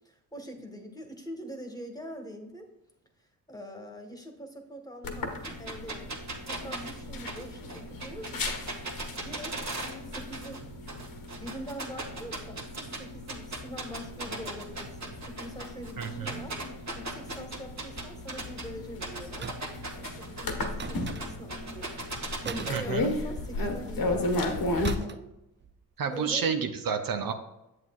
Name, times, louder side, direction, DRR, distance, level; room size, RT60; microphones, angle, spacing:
voice 1, 0.0-2.7 3.2-8.6 9.1-9.6 10.0-10.6 11.4-16.6 16.9-19.5 19.9-25.3 26.1-26.5, equal, 10° left, 4 dB, 1.5 m, -44 dB
sound 1, 5.0-24.9, left 2 dB, 60° left, 1.2 m, -36 dB
sound 2, 5.4-10.6 10.9-13.0 13.3-18.6 19.0-22.8, right 2 dB, 45° right, 1.6 m, -37 dB
voice 2, 16.0-16.4 22.7-23.1 26.0-27.3, right 6 dB, 60° right, 6 dB, 0.7 m, -30 dB
sound 3, 19.4-19.9 20.8-21.6 22.4-23.6 24.8-25.4 25.6-25.8, right 6 dB, 30° right, 0.4 m, -41 dB
7.8 x 7.6 x 2.4 m, 0.91 s
supercardioid pair, 45°, 38 cm